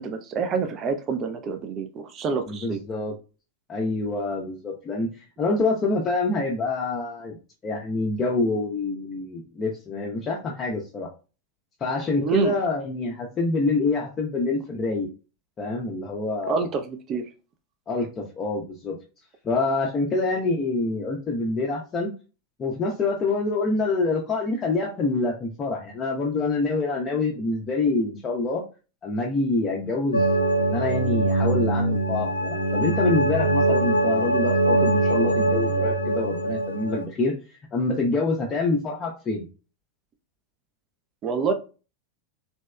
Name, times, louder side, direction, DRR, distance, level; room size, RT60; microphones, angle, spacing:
voice 1, 0.0-2.8 12.2-12.6 16.5-17.2 41.2-41.5, right 5 dB, 30° right, 7 dB, 0.5 m, -27 dB
voice 2, 2.5-3.1 3.7-7.4 7.6-11.1 11.8-15.1 15.6-16.7 17.9-19.0 19.4-22.1 22.6-28.6 29.0-37.3 37.7-39.4, left 3 dB, 25° left, -2 dB, 0.6 m, -26 dB
sound 1, 30.1-37.0, right 2 dB, 80° left, 0.4 m, -22 dB
3.0 x 2.8 x 2.2 m, 0.33 s
figure-of-eight pair, 90°, 0 cm